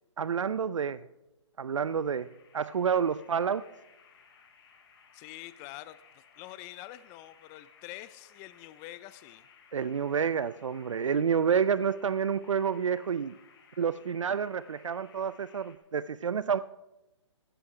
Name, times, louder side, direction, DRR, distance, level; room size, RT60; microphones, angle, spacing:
voice 1, 0.2-1.0 1.6-2.3 2.5-3.6 9.7-13.3 13.8-16.6, right 7 dB, 80° right, 16 dB, 0.5 m, -29 dB
sound 1, 1.8-15.8, left 6 dB, 50° left, 4.8 m, -60 dB
voice 2, 5.1-9.5, left 16 dB, 20° left, 16 dB, 0.4 m, -46 dB
15.5 x 13.0 x 4.8 m, 0.99 s
hypercardioid pair, 140°, 16 cm